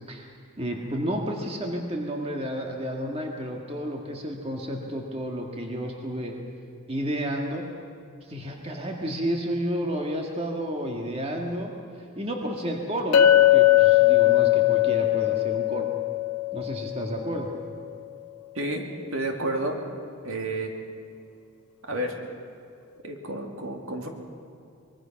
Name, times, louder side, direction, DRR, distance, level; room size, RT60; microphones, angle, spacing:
voice 1, 0.6-6.4 6.9-7.7 8.2-15.9 16.5-17.5, equal, 25° right, 1 dB, 1.9 m, -31 dB
Chink clink, 13.1-17.4, left 14 dB, 90° left, 0.8 m, -20 dB
voice 2, 19.1-19.8 20.2-20.7 21.9-22.2 23.0-24.1, right 1 dB, 65° right, 2 dB, 2.7 m, -30 dB
24.5 x 22.0 x 5.9 m, 2.4 s
head